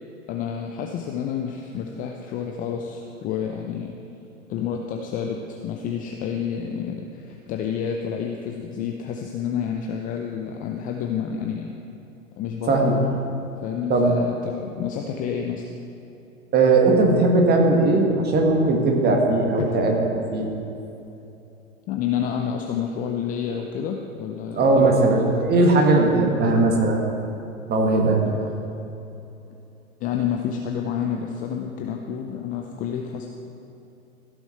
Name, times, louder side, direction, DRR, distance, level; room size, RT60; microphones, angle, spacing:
voice 1, 0.3-3.9 4.5-11.7 12.4-13.0 13.6-15.7 19.6-19.7 21.9-25.1 26.5-26.6 28.3-28.5 30.0-33.3, left 8 dB, 20° left, 2 dB, 0.5 m, -29 dB
voice 2, 12.7-13.0 13.9-14.1 16.5-20.0 20.3-20.5 24.6-27.0 27.7-28.2, right 2 dB, 25° right, 1 dB, 1.7 m, -18 dB
15.0 x 7.1 x 4.3 m, 2.9 s
hypercardioid pair, 105°, 41 cm